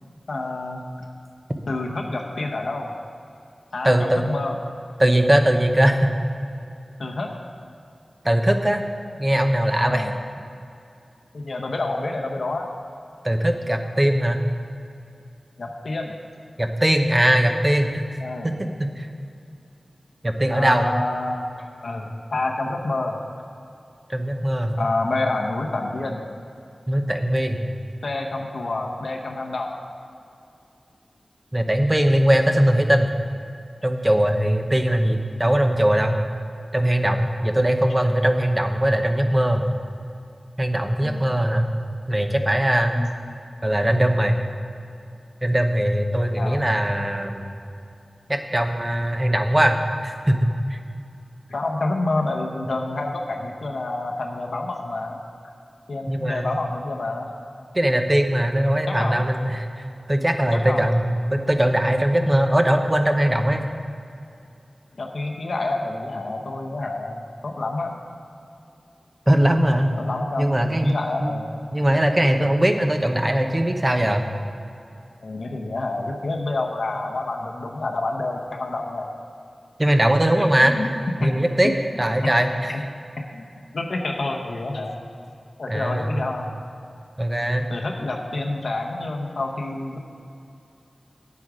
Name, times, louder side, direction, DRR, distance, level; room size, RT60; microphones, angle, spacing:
voice 1, 0.3-0.8 1.7-2.9 3.7-4.6 7.0-7.3 9.9-10.1 11.3-12.7 15.6-16.2 18.2-18.5 20.5-21.5 21.8-23.2 24.8-26.2 28.0-29.7 41.0-41.2 42.9-43.1 46.4-46.6 51.5-55.2 55.9-57.3 58.9-59.2 60.4-60.9 65.0-67.9 70.0-71.5 75.2-79.1 80.4-80.9 81.2-81.3 81.6-81.8 82.7-82.8 83.3-83.4 83.7-85.0 85.6-86.5 87.7-90.0, left 2 dB, 85° left, 1 dB, 0.8 m, -28 dB
voice 2, 3.8-4.3 5.0-6.1 8.2-8.8 9.2-10.1 13.2-14.4 16.6-18.0 18.4-19.1 20.2-20.9 24.1-24.8 26.9-27.6 31.5-33.1 33.8-36.2 36.7-39.6 40.6-41.7 42.1-43.0 43.6-44.4 45.4-47.5 48.3-49.8 50.0-50.8 56.1-56.6 57.7-59.8 60.1-63.6 69.3-70.0 70.4-71.0 71.2-71.4 71.7-74.2 79.8-80.9 81.2-81.7 82.0-82.7 85.7-86.1 87.2-87.7, right 1 dB, 20° right, 5 dB, 0.8 m, -20 dB
9.3 x 8.3 x 4.9 m, 2.6 s
wide cardioid pair, 85°, 0 cm